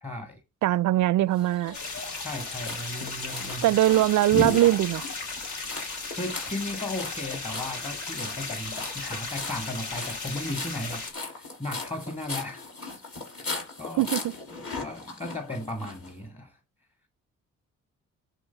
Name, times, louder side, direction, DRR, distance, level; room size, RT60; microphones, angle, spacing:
voice 1, 0.0-0.4 2.2-3.7 6.1-12.7 13.3-13.5 13.8-14.1 14.8-16.6, left 1 dB, 20° left, 1.9 m, -36 dB
voice 2, 0.6-1.8 3.6-5.1 14.0-14.2, right 15 dB, 65° right, 0.4 m, -21 dB
sound 1, 1.3-16.1, left 3 dB, 45° left, 6.0 m, -38 dB
sound 2, 1.7-11.1, left 3 dB, 65° left, 3.0 m, -36 dB
11.0 x 3.8 x 5.7 m
cardioid pair, 75°, 31 cm